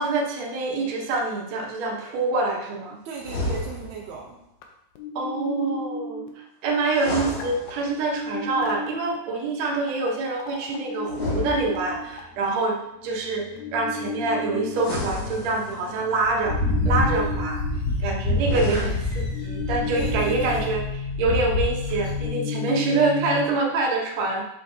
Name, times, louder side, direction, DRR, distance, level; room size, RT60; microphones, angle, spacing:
voice 1, 0.0-3.0 5.2-12.8 13.0-13.5 13.7-16.6 16.9-17.6 18.0-20.8 21.2-24.4, right 3 dB, 65° right, -1 dB, 1.8 m, -26 dB
voice 2, 3.0-4.4 19.9-20.7, right 5 dB, 80° right, -1 dB, 1.6 m, -36 dB
sound 1, 3.2-4.1 6.8-8.2 11.0-12.2 14.7-16.0 18.3-19.3, left 2 dB, 45° left, 1.9 m, -31 dB
sound 2, 4.6-4.7 5.0-6.3 7.4-9.2 9.9-10.1 10.4-23.5, left 3 dB, 85° left, 1.6 m, -33 dB
sound 3, 16.2-22.2, left 2 dB, 65° left, 0.9 m, -27 dB
8.2 x 6.8 x 2.7 m, 0.82 s
omnidirectional pair, 4.4 m